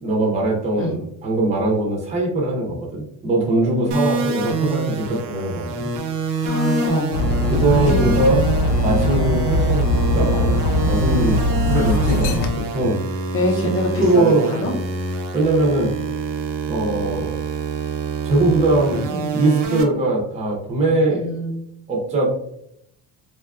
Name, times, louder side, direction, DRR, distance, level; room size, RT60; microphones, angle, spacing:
voice 1, 0.0-5.9 7.4-8.4 8.8-10.5 10.8-13.0 13.5-13.7 14.0-14.5 15.3-15.9 16.7-17.3 18.2-19.0 19.3-21.2 21.9-22.3, right 2 dB, 15° right, -2 dB, 0.5 m, -21 dB
sound 1, 3.9-19.8, right 3 dB, 85° right, 0.6 m, -26 dB
voice 2, 6.4-7.1 7.7-8.1 11.7-12.3 13.3-14.7 19.1-19.3 21.1-21.8, left 1 dB, 30° left, 1 dB, 0.7 m, -25 dB
Dog, 7.1-12.5, left 1 dB, 70° left, 0.5 m, -20 dB
2.6 x 2.3 x 2.4 m, 0.74 s
cardioid pair, 130°, 41 cm